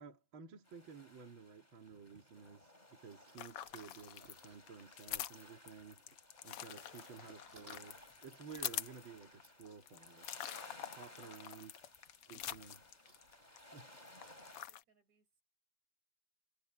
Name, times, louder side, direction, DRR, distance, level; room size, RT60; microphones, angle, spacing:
voice 1, 0.0-6.1 6.4-10.3 10.9-11.8 12.3-12.8 13.7-13.9, right 5 dB, 45° right, 3.1 m, -54 dB
sound 1, 0.6-14.7, left 1 dB, 15° left, 5.1 m, -59 dB
sound 2, 3.1-5.2 5.8-14.3, right 1 dB, 20° right, 5.4 m, -67 dB
sound 3, 3.4-13.6 13.9-14.8, left 12 dB, 65° left, 1.5 m, -46 dB
voice 2, 6.6-7.1 14.2-15.4, right 5 dB, 70° right, 7.2 m, -74 dB
omnidirectional pair, 3.3 m